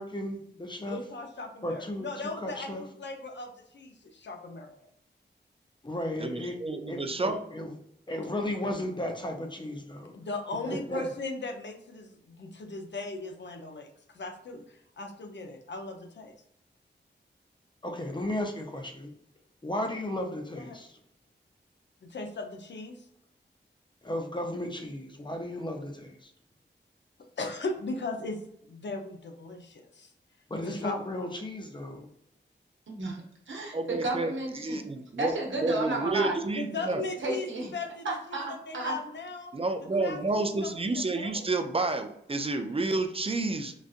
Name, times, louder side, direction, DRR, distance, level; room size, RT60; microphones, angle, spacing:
voice 1, 0.0-1.0 1.6-2.1 2.3-2.8 5.8-6.6 6.9-7.8 8.1-10.1 10.6-11.1 17.8-19.1 19.6-21.0 24.0-26.3 30.5-32.1, left 1 dB, 25° left, 3 dB, 0.6 m, -34 dB
voice 2, 0.8-4.9 10.1-13.9 14.1-16.3 20.6-20.7 22.0-23.1 27.4-30.1 30.6-31.3 36.5-38.2 38.5-39.5 40.0-41.5, left 3 dB, 70° left, 4 dB, 0.6 m, -38 dB
voice 3, 6.2-7.4 10.9-11.0 33.7-35.4 35.6-37.0 39.5-43.7, right 2 dB, 30° right, 7 dB, 0.4 m, -30 dB
voice 4, 32.9-34.8 35.2-36.3 37.2-37.7 38.0-38.9, right 2 dB, 85° right, -1 dB, 0.9 m, -32 dB
3.9 x 2.4 x 2.4 m, 0.73 s
wide cardioid pair, 60°, 19 cm